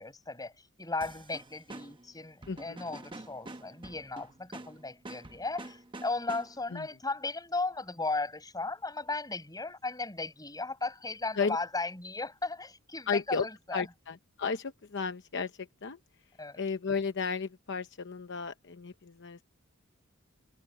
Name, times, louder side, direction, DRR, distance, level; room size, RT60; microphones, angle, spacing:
voice 1, 0.0-13.9 16.4-16.6, left 3 dB, 20° left, 5.6 m, -36 dB
sound 1, 1.0-6.8, right 2 dB, 25° right, 1.2 m, -47 dB
voice 2, 2.5-2.8 6.7-6.9 11.4-11.6 13.1-16.0 16.6-19.4, left 5 dB, 55° left, 0.8 m, -34 dB
head